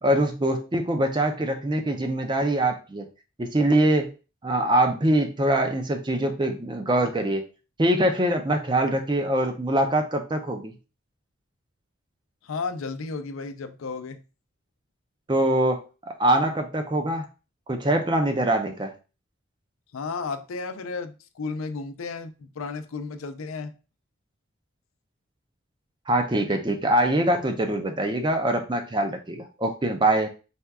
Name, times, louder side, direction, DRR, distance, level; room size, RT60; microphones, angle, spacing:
voice 1, 0.0-3.1 3.4-4.1 4.4-7.5 7.8-10.6 15.3-15.8 16.2-17.3 17.7-18.9 26.1-30.3, right 1 dB, 20° right, 5 dB, 0.4 m, -23 dB
voice 2, 12.4-14.2 19.9-23.7, left 4 dB, 90° left, 9 dB, 0.5 m, -33 dB
4.2 x 2.3 x 3.4 m, 0.33 s
head